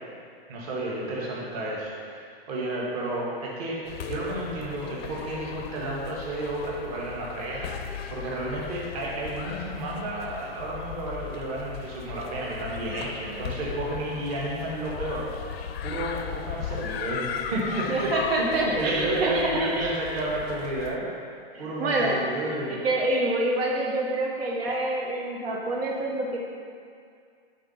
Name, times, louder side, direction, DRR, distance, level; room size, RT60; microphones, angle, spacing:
voice 1, 0.5-7.7 8.1-15.2 15.8-17.2 17.5-18.1 18.4-21.1 21.6-22.7, right 1 dB, 40° right, -5 dB, 1.5 m, -31 dB
sound 1, 3.8-21.0, left 8 dB, 80° left, 0.5 m, -37 dB
voice 2, 17.9-19.9 21.5-22.2 22.7-26.4, right 2 dB, 75° right, -3 dB, 1.1 m, -27 dB
5.9 x 3.9 x 5.4 m, 2.3 s
hypercardioid pair, 160°, 30 cm